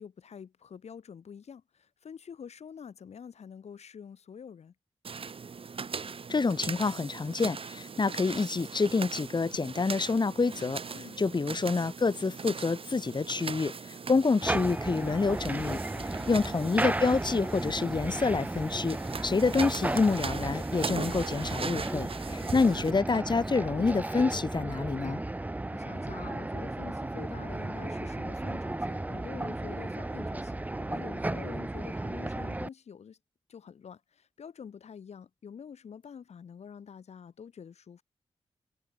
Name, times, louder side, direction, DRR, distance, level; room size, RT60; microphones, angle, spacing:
voice 1, 0.0-4.7 10.9-11.2 15.8-16.3 22.3-22.5 25.3-33.2 33.5-38.0, left 7 dB, 75° left, 6.2 m, -47 dB
sound 1, 5.0-22.9, right 5 dB, 55° right, 1.2 m, -40 dB
voice 2, 6.3-10.8 11.2-15.8 16.3-19.0 19.2-25.3, left 4 dB, 40° left, 1.3 m, -27 dB
sound 2, 14.4-32.7, right 2 dB, 15° right, 0.5 m, -34 dB
supercardioid pair, 40°, 11 cm